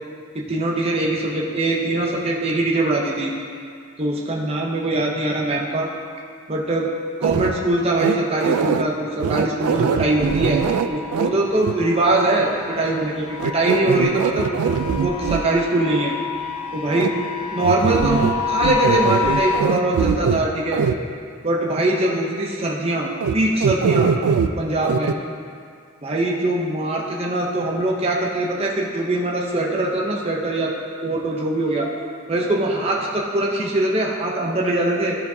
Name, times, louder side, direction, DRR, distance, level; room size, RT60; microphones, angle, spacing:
voice 1, 0.3-3.3 4.0-5.9 6.5-6.9 7.2-10.6 10.9-14.5 15.0-16.1 16.7-17.1 17.5-20.8 21.4-23.1 23.3-24.1 24.6-25.1 26.0-30.7 31.0-31.9 32.3-35.2, right 2 dB, 25° right, -2 dB, 0.6 m, -22 dB
sound 1, 7.2-7.5 8.0-8.8 9.2-11.3 11.6-11.7 13.4-15.4 16.9-17.1 17.6-18.4 18.6-20.4 20.7-21.0 23.2-23.3 23.6-24.5 24.8-25.1, right 6 dB, 85° right, 0.3 m, -21 dB
sound 2, 9.7-19.6, left 6 dB, 75° left, 0.4 m, -29 dB
13.0 x 4.5 x 2.7 m, 2.2 s
head